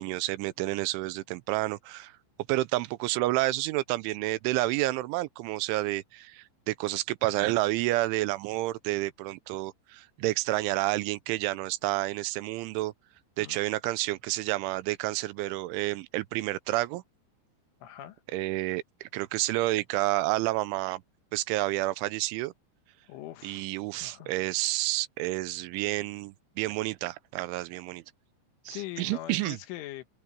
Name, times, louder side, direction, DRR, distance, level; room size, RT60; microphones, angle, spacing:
voice 1, 0.0-2.2 2.5-12.9 13.4-17.0 18.3-21.0 21.3-22.5 23.4-28.0 28.7-29.6, right 18 dB, 85° right, 3.2 m, -30 dB
voice 2, 17.8-18.2 23.1-23.7 24.0-24.3 28.7-30.1, left 15 dB, 90° left, 4.0 m, -41 dB
open air
omnidirectional pair, 5.4 m